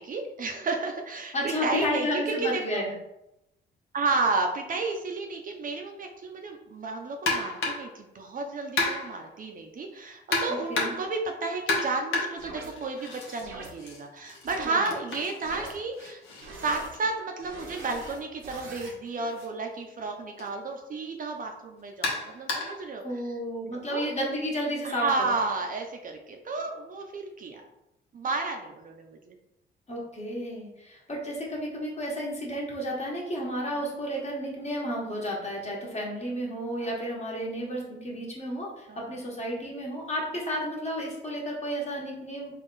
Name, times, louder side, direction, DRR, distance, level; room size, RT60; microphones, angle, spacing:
voice 1, 0.0-2.8 3.9-16.2 16.6-23.3 23.7-24.1 24.8-27.7 28.1-29.4 33.7-33.9 36.8-36.9 38.9-39.2, right 3 dB, 45° right, 3 dB, 0.6 m, -32 dB
voice 2, 1.3-2.9 10.7-10.9 14.6-14.8 23.0-25.1 29.9-42.5, equal, 35° left, -3 dB, 1.4 m, -32 dB
sound 1, 7.3-7.9 8.8-9.3 10.3-11.1 11.7-13.4 13.8-17.6 18.7-18.9 19.3-19.5 20.4-20.5 22.0-22.9, left 3 dB, 75° left, 0.9 m, -32 dB
sound 2, 12.4-12.7 13.4-13.7 14.4-14.6 15.4-15.7 16.4-16.9 17.4-18.9, right 3 dB, 85° right, 0.9 m, -43 dB
3.7 x 2.4 x 3.9 m, 0.87 s
cardioid pair, 90°, 20 cm